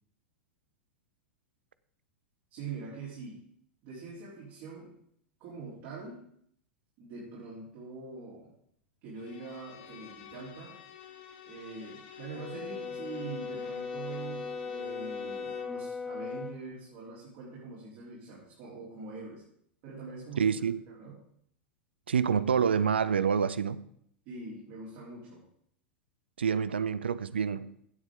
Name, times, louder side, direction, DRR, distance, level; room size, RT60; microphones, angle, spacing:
voice 1, 2.5-3.4 3.8-5.0 5.4-6.2 7.0-8.5 9.0-10.7 11.5-19.4 19.8-21.2 24.3-25.4, right 4 dB, 45° right, -6 dB, 3.9 m, -44 dB
Bowed string instrument, 9.1-15.8, left 11 dB, 55° left, 1.6 m, -47 dB
Brass instrument, 12.3-16.6, left 4 dB, 10° left, 0.4 m, -38 dB
voice 2, 20.4-20.8 22.1-23.8 26.4-27.7, right 7 dB, 70° right, 16 dB, 0.5 m, -27 dB
16.0 x 7.8 x 3.8 m, 0.68 s
figure-of-eight pair, 90°, 6 cm